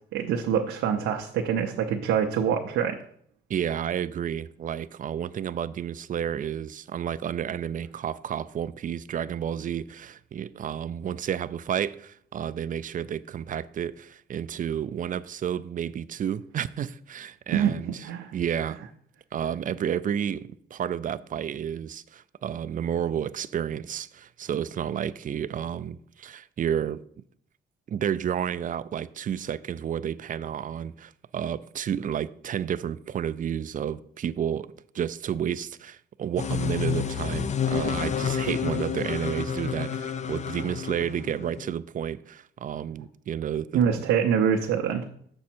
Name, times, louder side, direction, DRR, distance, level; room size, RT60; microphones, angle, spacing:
voice 1, 0.1-3.0 17.5-18.3 43.7-45.0, right 8 dB, 90° right, 0.7 m, -25 dB
voice 2, 3.5-18.8 19.3-27.0 27.9-34.7 34.9-44.1, right 9 dB, 45° right, 0.4 m, -31 dB
sound 1, 36.4-41.7, left 7 dB, 35° left, 0.5 m, -29 dB
7.0 x 6.3 x 4.4 m
cardioid pair, 90°, 20 cm